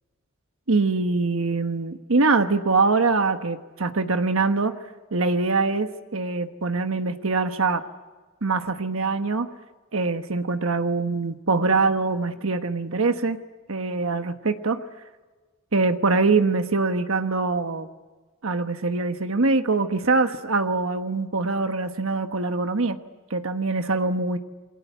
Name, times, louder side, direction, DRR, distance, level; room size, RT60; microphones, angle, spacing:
voice 1, 0.7-4.7 5.1-7.8 8.4-9.5 9.9-13.4 13.7-14.8 15.7-17.9 18.4-23.0 23.3-24.4, right 3 dB, 75° right, 8 dB, 1.2 m, -23 dB
28.5 x 22.5 x 8.2 m, 1.4 s
head